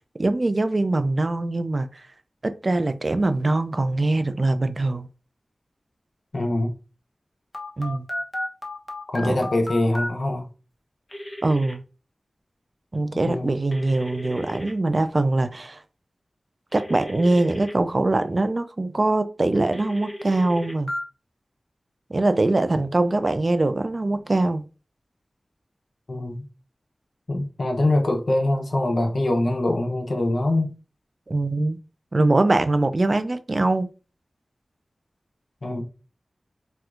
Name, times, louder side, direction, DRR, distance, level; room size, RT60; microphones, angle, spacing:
voice 1, 0.2-2.0 2.4-5.1 7.8-8.1 9.2-9.4 11.4-11.8 12.9-15.8 16.7-20.9 22.1-24.7 31.3-31.8 32.1-33.9, right 2 dB, 45° right, 0.4 m, -22 dB
voice 2, 6.3-6.8 9.1-10.5 13.3-13.6 26.1-26.5 27.3-30.7 35.6-35.9, left 1 dB, 60° left, 0.7 m, -23 dB
Telephone, 7.5-10.1 11.1-11.7 13.7-14.7 16.7-17.7 19.7-21.0, left 1 dB, 20° left, 0.8 m, -33 dB
4.3 x 2.3 x 2.4 m
wide cardioid pair, 60°, 0 cm